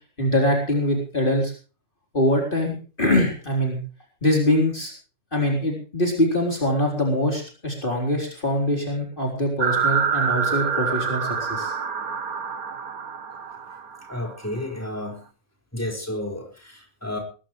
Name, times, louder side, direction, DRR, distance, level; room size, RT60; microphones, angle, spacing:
voice 1, 0.2-1.5 2.1-3.8 4.2-4.9 5.3-11.8, left 1 dB, 35° left, 1 dB, 4.3 m, -23 dB
sound 1, 9.6-14.3, right 6 dB, 85° right, 1.9 m, -26 dB
voice 2, 14.1-15.2 15.7-17.2, left 1 dB, 10° left, 2 dB, 4.9 m, -31 dB
21.0 x 15.5 x 3.2 m, 0.36 s
omnidirectional pair, 1.5 m